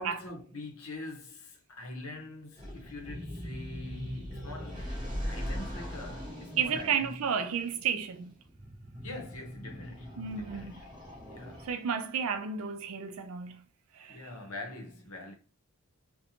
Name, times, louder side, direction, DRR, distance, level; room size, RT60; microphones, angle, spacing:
voice 1, 0.0-4.9 5.3-7.3 9.0-10.9 11.3-11.7 14.1-15.3, left 2 dB, 80° left, 0.8 m, -44 dB
sound 1, 2.6-12.1, equal, 20° right, 0.8 m, -41 dB
voice 2, 6.6-8.3 10.2-10.7 11.7-13.6 14.0-14.2, right 7 dB, 70° right, 0.4 m, -32 dB
2.6 x 2.1 x 2.8 m
head